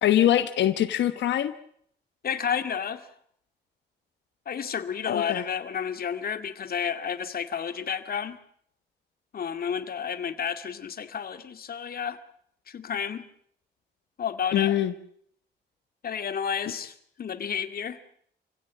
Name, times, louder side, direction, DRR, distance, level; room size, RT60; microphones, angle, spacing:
voice 1, 0.0-1.5 5.1-5.4 14.5-14.9, left 11 dB, 90° left, 9 dB, 1.2 m, -23 dB
voice 2, 2.2-3.1 4.5-8.4 9.3-12.2 12.7-13.3 14.2-14.8 16.0-18.0, left 7 dB, 55° left, 9 dB, 2.3 m, -31 dB
27.0 x 16.5 x 8.5 m, 0.65 s
cardioid pair, 100°, 18 cm